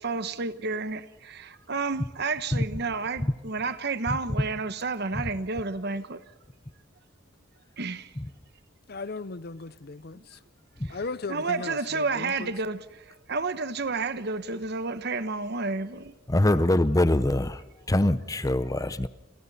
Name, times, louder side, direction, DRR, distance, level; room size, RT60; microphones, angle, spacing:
voice 1, 0.0-6.2 7.8-8.1 10.8-11.0 11.3-16.1, right 4 dB, 55° right, 1.1 m, -31 dB
voice 2, 8.9-10.4 10.9-12.5 16.5-16.7, left 3 dB, 50° left, 0.7 m, -37 dB
voice 3, 16.3-17.6 17.9-19.1, left 1 dB, 15° left, 0.7 m, -23 dB
28.5 x 28.5 x 4.2 m
head